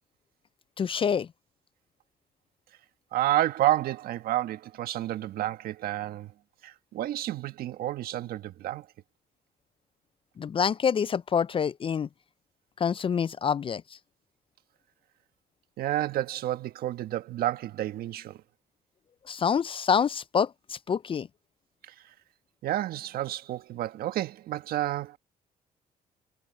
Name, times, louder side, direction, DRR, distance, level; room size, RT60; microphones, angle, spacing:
voice 1, 0.8-1.3 10.4-12.1 12.8-13.8 19.3-21.3, left 7 dB, 35° left, 0.4 m, -26 dB
voice 2, 3.1-6.3 6.6-8.9 15.8-18.4 21.9-22.0 22.6-25.2, right 14 dB, 75° right, 1.5 m, -30 dB
supercardioid pair, 65°, 16 cm